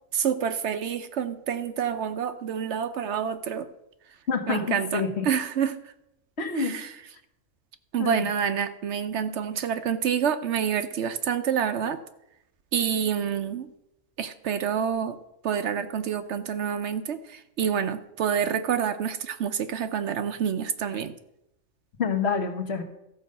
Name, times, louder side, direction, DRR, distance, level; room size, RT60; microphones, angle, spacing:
voice 1, 0.1-3.7 4.5-5.8 6.6-6.9 7.9-12.0 12.7-13.7 14.2-15.2 15.4-21.1, right 8 dB, 65° right, 10 dB, 0.9 m, -28 dB
voice 2, 4.3-5.3 6.4-6.7 8.0-8.3 22.0-22.8, left 5 dB, 55° left, 3 dB, 1.4 m, -27 dB
14.0 x 5.2 x 6.6 m, 0.84 s
omnidirectional pair, 1.3 m